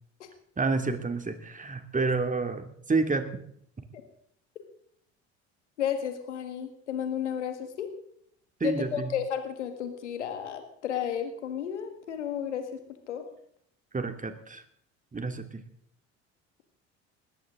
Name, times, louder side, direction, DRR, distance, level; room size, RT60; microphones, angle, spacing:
voice 1, 0.6-3.3 8.6-9.1 13.9-14.6 15.1-15.6, right 3 dB, 20° right, 7 dB, 2.6 m, -29 dB
voice 2, 5.8-7.9 8.6-12.7 13.1-13.2, left 9 dB, 90° left, 7 dB, 1.9 m, -32 dB
20.5 x 14.5 x 3.8 m, 0.68 s
hypercardioid pair, 65°, 34 cm